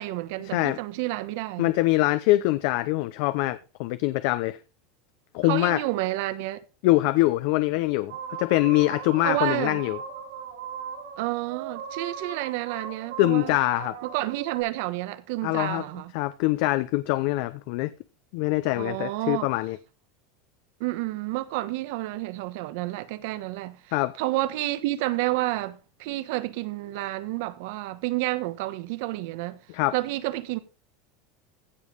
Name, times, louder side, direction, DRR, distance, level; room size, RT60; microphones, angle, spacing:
voice 1, 0.0-1.7 5.4-6.6 9.2-9.8 11.2-13.6 14.0-16.1 18.8-19.5 20.8-29.6 29.9-30.6, right 17 dB, 65° right, 1.1 m, -30 dB
voice 2, 1.6-4.6 5.3-5.8 6.8-8.1 8.4-10.0 13.2-14.0 15.4-15.8 16.1-17.9 18.3-19.8 23.9-24.1 29.7-29.9, left 18 dB, 60° left, 0.7 m, -24 dB
sound 1, 8.1-14.6, right 7 dB, 90° right, 5.9 m, -38 dB
15.5 x 5.2 x 5.2 m
supercardioid pair, 150°, 0 cm